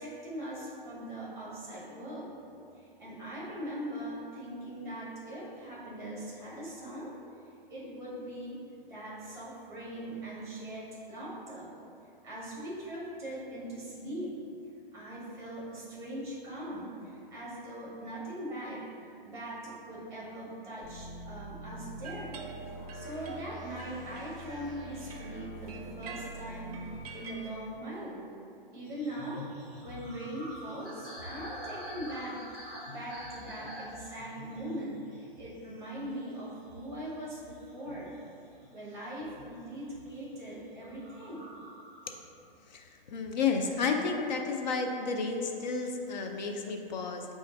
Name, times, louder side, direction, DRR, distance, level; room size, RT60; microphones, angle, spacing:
voice 1, 0.0-2.4 2.7-7.1 7.7-11.8 12.2-14.4 14.9-22.4 22.9-28.2 28.7-29.5 29.8-38.1 38.7-41.5, right 1 dB, 10° right, -7 dB, 1.2 m, -41 dB
sound 1, 20.8-27.0, right 1 dB, 70° left, 1.1 m, -45 dB
sound 2, 22.0-27.5, right 4 dB, 40° right, 0.6 m, -48 dB
sound 3, 28.8-38.7 39.2-40.2 40.7-42.1, equal, 30° left, 1.5 m, -46 dB
voice 2, 42.7-47.3, left 4 dB, 50° left, 3 dB, 0.5 m, -31 dB
5.1 x 2.5 x 3.9 m, 2.5 s
hypercardioid pair, 145°, 29 cm